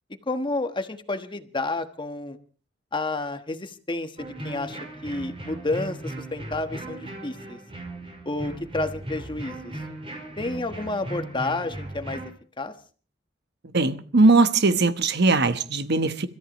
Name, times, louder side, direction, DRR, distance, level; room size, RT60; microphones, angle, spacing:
voice 1, 0.3-2.4 2.9-7.6 8.2-9.7 10.4-12.2 12.6-12.7, left 2 dB, 25° left, 1.3 m, -30 dB
sound 1, 4.2-12.3, right 1 dB, 30° right, 5.4 m, -37 dB
voice 2, 13.7-16.3, right 3 dB, 60° right, 1.1 m, -20 dB
30.0 x 14.0 x 3.1 m
head